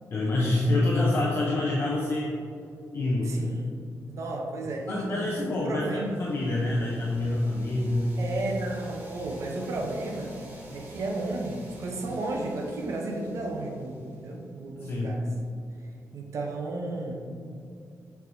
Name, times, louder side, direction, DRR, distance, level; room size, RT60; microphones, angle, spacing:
voice 1, 0.1-2.3 2.9-3.4 4.9-8.1 14.8-15.2, left 2 dB, 40° left, -4 dB, 0.7 m, -26 dB
voice 2, 3.2-6.1 8.2-10.3 10.7-15.3 16.1-17.2, right 2 dB, 55° right, 1 dB, 0.7 m, -33 dB
sound 1, 5.8-14.5, right 2 dB, 30° right, 1.1 m, -48 dB
7.4 x 4.7 x 2.7 m, 2.4 s
wide cardioid pair, 170°, 6 cm